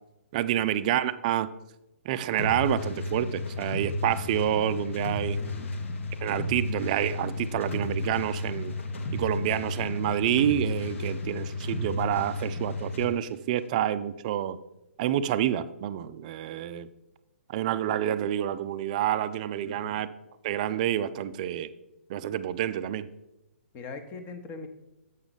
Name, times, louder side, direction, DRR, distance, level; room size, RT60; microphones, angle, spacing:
voice 1, 0.3-1.5 2.1-5.4 6.2-8.7 9.1-14.6 15.0-16.9 17.5-20.1 20.4-21.7 22.1-23.1, right 11 dB, 35° right, 15 dB, 0.3 m, -28 dB
sound 1, 2.4-13.1, left 2 dB, 65° left, 1.0 m, -33 dB
voice 2, 5.4-5.8 19.6-20.0 23.7-24.7, left 4 dB, 25° left, 7 dB, 0.8 m, -42 dB
7.8 x 5.8 x 4.0 m, 0.91 s
figure-of-eight pair, 125°, 7 cm